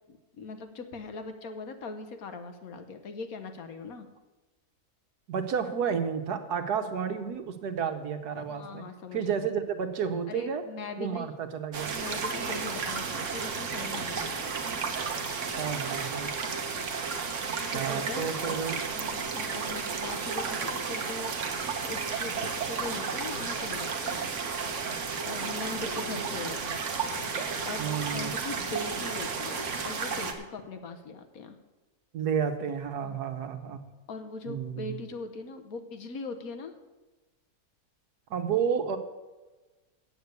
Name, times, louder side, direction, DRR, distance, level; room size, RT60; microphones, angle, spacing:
voice 1, 0.1-4.1 8.5-9.2 10.3-11.3 11.9-14.5 17.4-18.6 18.9-21.5 21.8-24.3 25.2-26.8 27.6-31.6 33.0-33.2 34.1-36.7, left 3 dB, 65° left, 7 dB, 1.4 m, -40 dB
voice 2, 5.3-8.8 9.1-10.6 11.0-11.9 15.6-16.3 17.4-18.8 27.8-28.3 32.1-33.8 34.5-35.0 38.3-39.0, right 7 dB, 85° right, 7 dB, 1.5 m, -31 dB
sound 1, 11.7-30.3, right 5 dB, 55° right, 1.3 m, -33 dB
8.1 x 7.7 x 8.3 m, 1.2 s
omnidirectional pair, 1.7 m